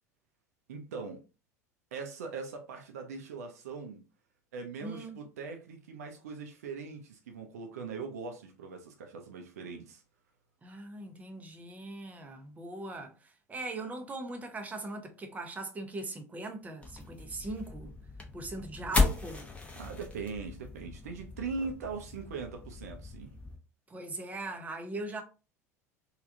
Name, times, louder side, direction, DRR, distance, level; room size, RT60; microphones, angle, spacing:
voice 1, 0.7-1.2 1.9-4.0 4.5-10.0 19.8-23.4, right 4 dB, 65° right, 0.5 m, -41 dB
voice 2, 4.8-5.2 10.6-17.9 18.3-19.5 23.9-25.2, right 2 dB, 15° right, 0.7 m, -40 dB
sound 1, 16.8-23.6, left 3 dB, 15° left, 0.8 m, -35 dB
3.3 x 2.4 x 2.6 m
figure-of-eight pair, 75°, 9 cm